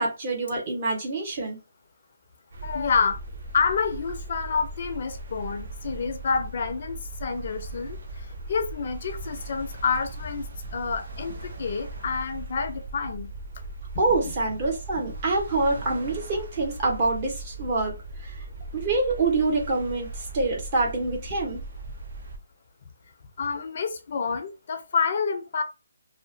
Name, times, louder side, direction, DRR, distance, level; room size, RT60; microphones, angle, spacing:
voice 1, 0.0-1.6 14.0-18.3 18.7-21.6, right 3 dB, 35° right, 0.9 m, -26 dB
sound 1, 2.5-22.4, right 2 dB, 60° right, 0.8 m, -39 dB
voice 2, 2.6-3.2 3.5-8.0 8.5-10.5 10.7-13.3 14.2-14.3 15.1-15.2 23.4-25.6, left 5 dB, 45° left, 0.5 m, -28 dB
2.8 x 2.0 x 2.6 m
figure-of-eight pair, 155°, 0 cm